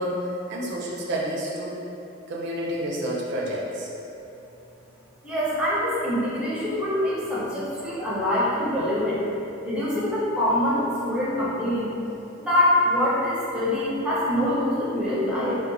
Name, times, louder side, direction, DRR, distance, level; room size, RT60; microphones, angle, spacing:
voice 1, 0.0-1.8 2.3-3.9, equal, 60° right, -3 dB, 0.4 m, -29 dB
voice 2, 5.2-9.2 9.6-11.9 12.4-15.6, left 1 dB, 5° right, -8 dB, 0.6 m, -24 dB
2.8 x 2.1 x 3.8 m, 2.9 s
head